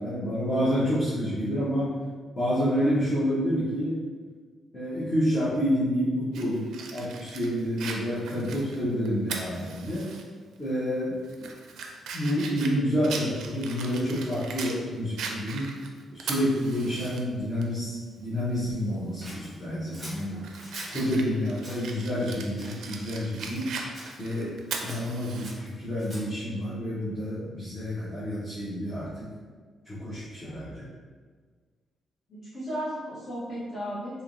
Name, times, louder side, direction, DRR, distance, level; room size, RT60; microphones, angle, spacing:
voice 1, 0.0-1.9 2.4-4.0 4.7-10.1 10.6-11.5 12.1-15.7 16.1-20.4 20.9-29.3 29.8-30.9, equal, 20° left, -11 dB, 0.8 m, -29 dB
Fire, 6.3-10.2 10.6-10.7 11.2-14.8 15.2-17.2 17.6-17.7 19.2-19.4 19.9-25.5, right 5 dB, 85° right, 0.4 m, -39 dB
Scissors, 19.2-21.1 21.6-21.9 22.5-23.1 23.4-24.2 24.8-26.4, right 1 dB, 15° right, 1.1 m, -45 dB
voice 2, 32.3-34.2, equal, 40° left, -10 dB, 1.0 m, -35 dB
3.3 x 2.8 x 2.5 m, 1.5 s
wide cardioid pair, 170°, 0 cm